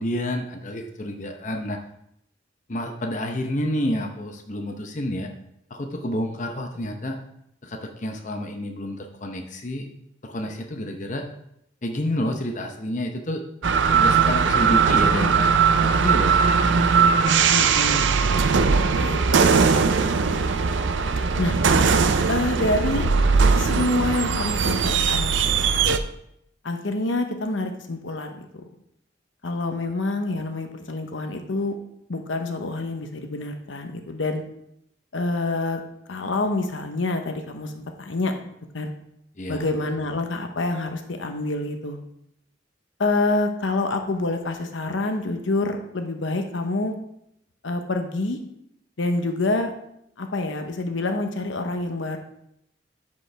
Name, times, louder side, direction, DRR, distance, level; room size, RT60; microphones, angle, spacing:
voice 1, 0.0-1.8 2.7-5.3 5.7-7.2 7.6-9.9 10.2-11.3 11.8-13.4 13.9-16.9 39.4-39.7, left 1 dB, 40° left, 3 dB, 0.8 m, -29 dB
sound 1, 13.6-26.0, right 5 dB, 80° right, 0.5 m, -19 dB
voice 2, 17.5-18.1 18.7-20.4 21.4-21.6 22.3-23.1 23.6-25.4 25.7-26.0 26.6-28.6 29.4-31.7 32.1-34.4 35.1-35.8 36.1-38.3 38.7-38.9 39.5-42.0 43.0-46.9 47.6-48.4 49.0-49.7 50.2-52.2, left 2 dB, 85° left, 6 dB, 0.9 m, -27 dB
11.0 x 5.3 x 3.4 m, 0.77 s
head